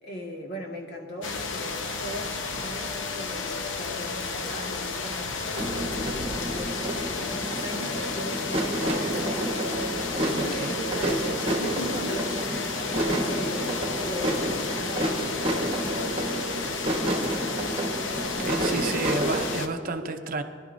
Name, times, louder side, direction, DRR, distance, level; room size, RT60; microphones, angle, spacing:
voice 1, 0.0-9.5 10.3-17.7 18.3-19.1 19.8-20.1, equal, 55° left, 0 dB, 1.7 m, -39 dB
sound 1, 1.2-19.7, left 4 dB, 80° left, 0.8 m, -32 dB
sound 2, 5.6-19.6, right 1 dB, 30° right, 1.0 m, -30 dB
voice 2, 10.3-10.7 18.2-20.4, right 3 dB, 45° right, 7 dB, 0.6 m, -31 dB
19.5 x 11.5 x 2.6 m, 2.2 s
head